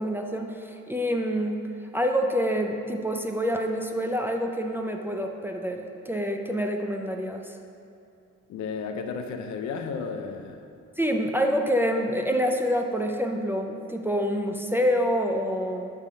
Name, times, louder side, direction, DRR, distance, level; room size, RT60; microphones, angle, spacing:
voice 1, 0.0-1.6 1.9-7.6 11.0-15.9, equal, 5° right, 2 dB, 0.4 m, -27 dB
voice 2, 8.5-10.6, left 5 dB, 70° left, 6 dB, 0.6 m, -33 dB
7.2 x 3.5 x 5.6 m, 2.5 s
cardioid pair, 90°, 30 cm